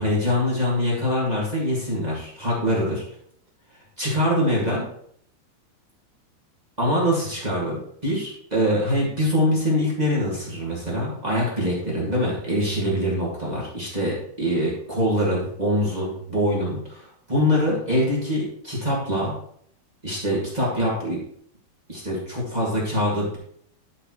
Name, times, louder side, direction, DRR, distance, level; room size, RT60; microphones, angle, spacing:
voice 1, 0.0-3.0 4.0-4.8 6.8-19.3 20.0-21.2 21.9-23.4, equal, 40° right, -6 dB, 0.6 m, -24 dB
12.0 x 5.7 x 3.1 m, 0.66 s
omnidirectional pair, 4.7 m